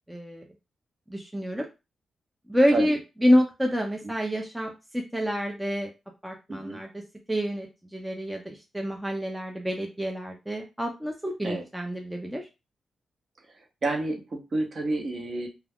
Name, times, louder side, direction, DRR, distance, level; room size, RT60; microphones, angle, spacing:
voice 1, 0.1-0.4 1.1-1.7 2.5-5.9 6.2-6.9 7.3-7.7 7.9-12.4, equal, 5° right, 1 dB, 0.4 m, -27 dB
voice 2, 6.5-6.8 11.4-11.6 13.8-15.5, right 2 dB, 45° right, 2 dB, 0.7 m, -30 dB
2.3 x 2.2 x 3.4 m, 0.27 s
wide cardioid pair, 125°, 0 cm